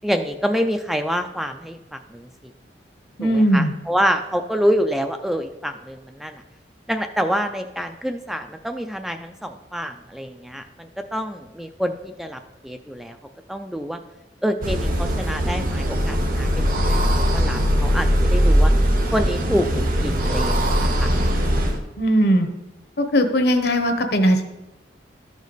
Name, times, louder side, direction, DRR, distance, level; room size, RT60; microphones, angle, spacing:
voice 1, 0.0-2.3 3.2-6.4 6.9-13.2 13.5-14.0 14.4-18.7 19.1-21.1, equal, ahead, 6 dB, 0.3 m, -27 dB
voice 2, 3.2-3.7 22.0-22.5 23.0-24.4, equal, 65° left, 6 dB, 1.0 m, -18 dB
sound 1, 14.6-21.8, equal, 50° right, 1.0 m, -20 dB
13.0 x 5.1 x 3.9 m, 1.0 s
head